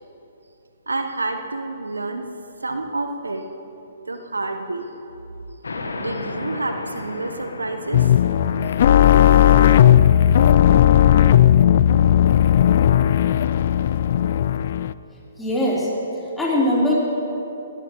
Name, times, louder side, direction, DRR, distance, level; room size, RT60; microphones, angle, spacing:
voice 1, 0.9-2.3 2.6-3.4 4.1-4.9 6.0-8.1, right 2 dB, 90° right, 6 dB, 1.0 m, -28 dB
sound 1, 5.6-12.8, left 3 dB, 80° left, 1.3 m, -36 dB
sound 2, 7.9-14.9, left 10 dB, 55° left, 0.4 m, -15 dB
voice 2, 15.4-15.9 16.4-16.9, left 1 dB, 5° left, -6 dB, 3.7 m, -20 dB
20.0 x 17.0 x 3.1 m, 3.0 s
hypercardioid pair, 130°, 0 cm